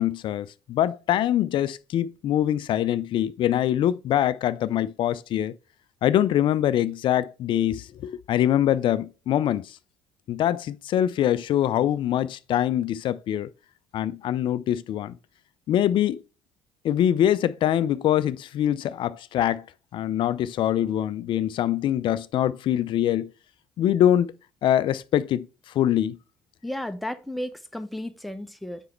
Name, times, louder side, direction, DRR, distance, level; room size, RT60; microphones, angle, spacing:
voice 1, 0.0-5.5 6.0-9.7 10.3-13.5 13.9-15.2 15.7-16.2 16.8-19.6 19.9-23.3 23.8-24.3 24.6-25.5 25.8-26.2, left 11 dB, 50° left, 0.4 m, -24 dB
voice 2, 26.6-28.8, left 1 dB, ahead, 0.7 m, -33 dB
6.9 x 4.8 x 3.1 m
hypercardioid pair, 55°, 10 cm